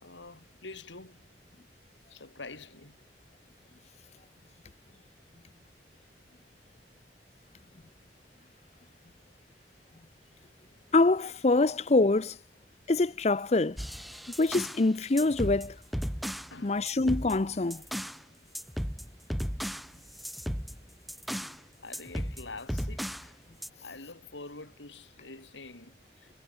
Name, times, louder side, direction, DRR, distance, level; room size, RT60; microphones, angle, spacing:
voice 1, 0.0-1.2 2.1-2.9 16.5-16.9 21.8-23.3 23.8-26.3, left 3 dB, 85° left, 3.3 m, -46 dB
voice 2, 10.9-12.3 12.9-13.8 14.4-15.7 16.6-17.8, left 2 dB, 35° left, 0.6 m, -25 dB
sound 1, 13.8-14.8 15.2-16.5 16.9-18.2 18.5-21.6 21.9-23.3 23.6-23.7, equal, ahead, 1.9 m, -35 dB
head